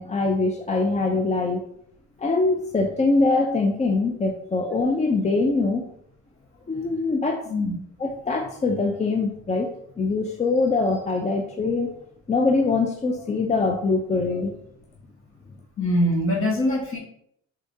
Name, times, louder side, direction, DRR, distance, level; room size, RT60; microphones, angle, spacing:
voice 1, 0.0-1.6 2.2-5.9 6.7-7.5 8.0-11.9 12.3-14.5, left 3 dB, 25° left, 2 dB, 0.4 m, -23 dB
voice 2, 15.8-17.0, left 1 dB, 45° left, -1 dB, 1.4 m, -23 dB
3.8 x 3.4 x 2.7 m, 0.69 s
cardioid pair, 90°, 30 cm